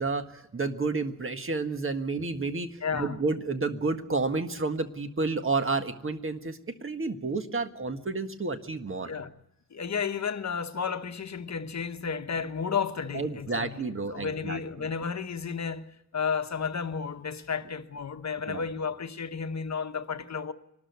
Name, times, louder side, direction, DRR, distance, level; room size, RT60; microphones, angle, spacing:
voice 1, 0.0-9.1 13.1-14.9 18.5-18.6, right 3 dB, 40° right, 1.7 m, -30 dB
voice 2, 2.8-3.2 9.0-9.3 9.7-20.5, left 6 dB, 55° left, 1.1 m, -32 dB
24.5 x 13.0 x 9.5 m
wide cardioid pair, 85°, 32 cm